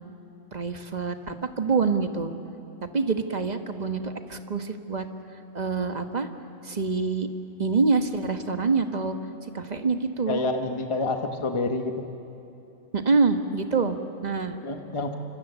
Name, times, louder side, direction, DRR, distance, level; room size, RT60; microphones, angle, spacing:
voice 1, 0.5-2.3 2.9-5.1 5.5-6.3 6.6-7.3 7.6-9.2 9.4-10.4 12.9-14.6, right 4 dB, 35° right, 7 dB, 1.3 m, -26 dB
voice 2, 10.3-12.0 14.6-15.2, left 3 dB, 25° left, 5 dB, 1.2 m, -28 dB
26.5 x 25.0 x 8.2 m, 2.9 s
omnidirectional pair, 1.3 m